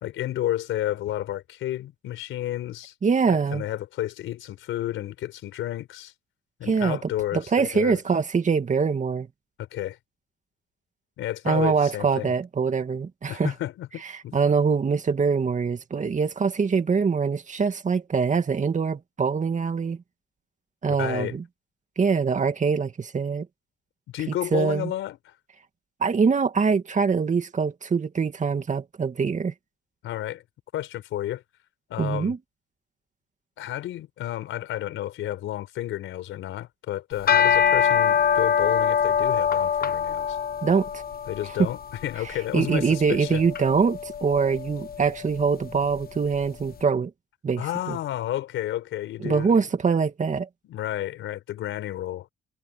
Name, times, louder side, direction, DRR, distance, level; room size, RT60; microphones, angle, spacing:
voice 1, 0.0-2.9 3.3-6.1 6.6-8.0 9.6-10.0 11.2-12.3 13.3-14.4 21.0-21.4 24.1-25.3 30.0-30.4 30.7-31.4 31.9-32.3 33.6-40.4 41.3-43.4 47.6-49.7 50.6-52.3, left 13 dB, 85° left, 4.3 m, -31 dB
voice 2, 3.0-3.6 6.6-7.0 7.3-9.3 11.5-13.5 14.3-20.0 20.8-21.4 22.0-23.5 24.5-24.9 26.0-29.5 32.0-32.4 40.6-41.0 41.6-41.7 42.5-47.1 47.4-48.0 49.2-50.5, right 5 dB, 40° right, 2.3 m, -23 dB
sound 1, 37.1-46.5, left 8 dB, 50° left, 1.2 m, -25 dB
cardioid pair, 90°, 20 cm